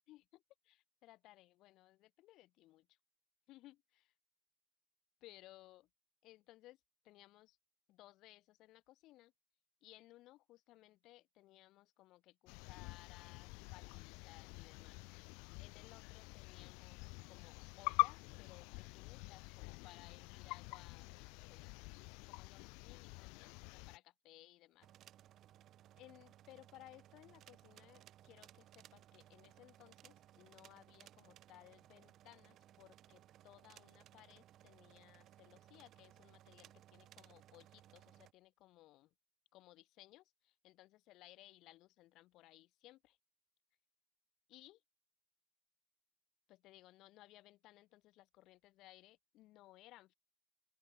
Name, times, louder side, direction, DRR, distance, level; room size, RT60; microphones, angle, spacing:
voice 1, 0.1-3.0 3.5-4.1 5.2-5.9 6.2-7.6 7.9-9.3 9.8-15.0 15.6-21.1 21.5-21.7 22.3-24.9 26.0-39.1 39.5-43.2 44.5-44.8 46.5-50.1, left 17 dB, 55° left, 3.5 m, -62 dB
sound 1, 12.5-24.0, left 30 dB, 80° left, 0.4 m, -45 dB
sound 2, 24.8-38.3, right 12 dB, 40° right, 0.7 m, -62 dB
open air
cardioid pair, 175°, 0 cm